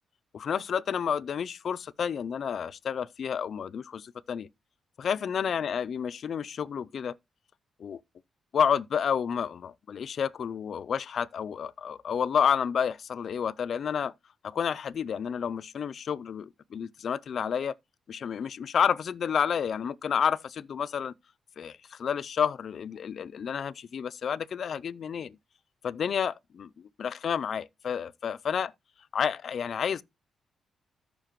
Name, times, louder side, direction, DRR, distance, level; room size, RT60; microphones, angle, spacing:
voice 1, 0.3-4.5 5.0-7.1 7.8-8.0 8.5-14.1 14.4-17.8 18.1-21.1 21.6-25.4 25.8-26.7 27.0-28.7 29.1-30.0, left 7 dB, 65° left, 0.4 m, -30 dB
13.5 x 5.1 x 3.0 m
supercardioid pair, 55°, 0 cm